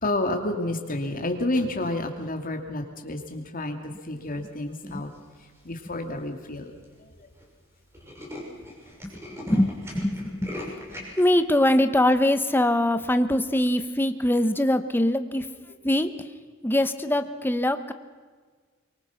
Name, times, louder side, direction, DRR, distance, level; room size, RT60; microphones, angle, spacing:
voice 1, 0.0-5.1 5.6-6.7 7.0-7.3, left 1 dB, 40° left, 4 dB, 2.6 m, -30 dB
Tools, 5.1-5.6 6.2-6.3 6.5-6.6 6.8-7.0 7.3-7.4 7.7-11.2, left 1 dB, 15° right, 6.3 m, -40 dB
voice 2, 9.5-15.5 15.8-16.3 16.6-17.9, left 1 dB, 10° left, 9 dB, 1.0 m, -23 dB
24.5 x 23.5 x 5.9 m, 1.5 s
head